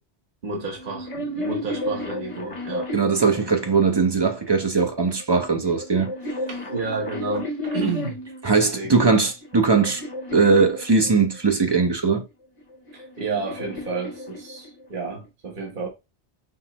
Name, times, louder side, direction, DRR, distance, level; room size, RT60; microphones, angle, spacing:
voice 1, 0.4-2.9 6.5-8.2 8.5-9.1 12.9-15.9, right 4 dB, 50° right, 1.3 m, -31 dB
sound 1, 0.7-4.1 5.1-8.5 9.1-11.5 12.6-15.0, left 1 dB, 35° left, 0.9 m, -33 dB
voice 2, 2.9-6.1 8.4-10.0 10.3-12.2, right 4 dB, 30° right, 0.6 m, -20 dB
5.5 x 2.1 x 2.9 m
omnidirectional pair, 1.1 m